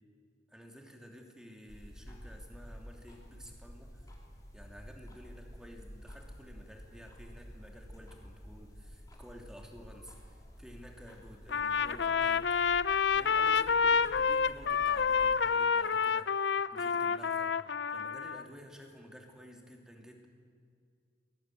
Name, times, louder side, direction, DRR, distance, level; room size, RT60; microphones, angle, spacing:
voice 1, 0.5-4.1 4.5-12.5 13.1-17.6 17.9-20.3, equal, 5° right, 1 dB, 2.9 m, -52 dB
sound 1, 1.7-15.4, equal, 20° left, 3.8 m, -51 dB
Trumpet, 11.5-18.4, left 6 dB, 70° left, 0.6 m, -28 dB
27.0 x 19.0 x 9.1 m, 2.2 s
head